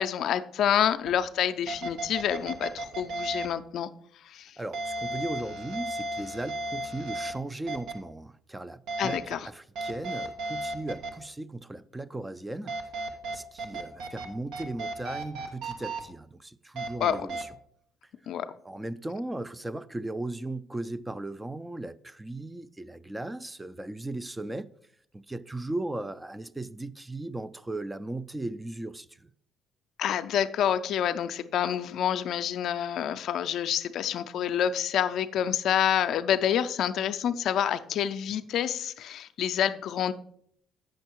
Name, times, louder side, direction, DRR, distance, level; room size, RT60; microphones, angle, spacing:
voice 1, 0.0-3.9 4.2-4.6 9.0-9.5 17.0-17.3 18.3-18.5 30.0-40.1, left 9 dB, 70° left, 0.4 m, -28 dB
sound 1, 1.1-1.2 1.7-3.5 4.7-7.3 7.7-7.9 8.9-9.3 9.8-11.1 12.7-14.3 14.5-16.0 16.8-17.4, right 2 dB, 80° right, 1.2 m, -34 dB
voice 2, 4.6-12.7 13.3-17.5 18.6-24.7 25.1-29.3, right 2 dB, 15° right, 0.4 m, -37 dB
8.0 x 6.3 x 4.5 m
supercardioid pair, 70°, 0 cm